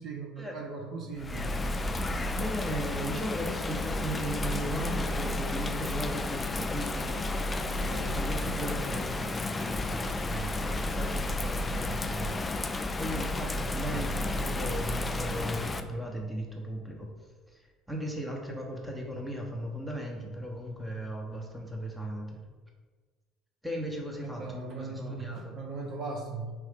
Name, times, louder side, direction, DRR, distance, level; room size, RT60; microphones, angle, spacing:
voice 1, 0.0-1.5 13.7-14.1 24.2-26.5, right 3 dB, 50° right, 1 dB, 0.8 m, -38 dB
Bird vocalization bird call bird song / Rain, 1.2-15.8, left 2 dB, 20° left, 0.3 m, -32 dB
voice 2, 2.3-7.2 7.8-12.4 12.8-17.1 17.5-17.6 17.9-22.4 23.6-25.5, equal, 5° right, 0 dB, 0.9 m, -37 dB
4.5 x 2.7 x 3.5 m, 1.4 s
hypercardioid pair, 70°, 0 cm